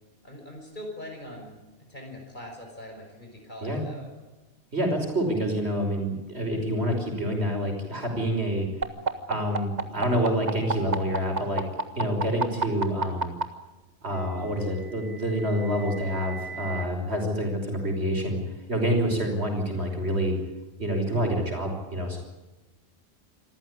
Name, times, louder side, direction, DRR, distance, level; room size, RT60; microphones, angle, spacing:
voice 1, 0.2-1.6 1.9-4.1, left 1 dB, 45° left, 1 dB, 6.0 m, -42 dB
voice 2, 4.7-8.7 9.3-11.6 12.0-13.3 14.0-18.4 18.7-20.4 20.8-22.2, equal, 75° right, 3 dB, 5.9 m, -27 dB
sound 1, 8.8-13.4 14.6-16.8, right 3 dB, 40° right, 1.7 m, -30 dB
26.5 x 14.5 x 9.9 m, 1.1 s
omnidirectional pair, 1.1 m